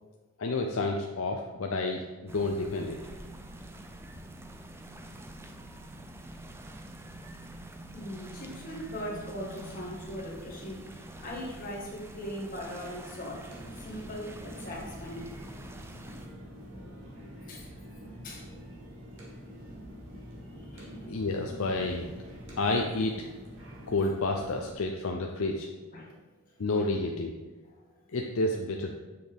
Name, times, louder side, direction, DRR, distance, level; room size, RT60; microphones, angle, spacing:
voice 1, 0.4-2.0 2.3-3.0 20.7-22.1 22.6-23.3 23.9-25.7 26.6-27.3 28.1-29.0, left 2 dB, 65° left, 2 dB, 0.5 m, -30 dB
sound 1, 2.3-16.3, right 1 dB, 10° right, 0.3 m, -46 dB
voice 2, 7.9-13.5 13.8-15.7 17.5-17.7 18.2-18.5 20.6-20.9 25.9-26.2 26.5-26.6, equal, 40° left, -3 dB, 1.6 m, -40 dB
sound 2, 13.4-24.7, equal, 55° right, 1.8 m, -46 dB
7.5 x 5.9 x 3.5 m, 1.2 s
head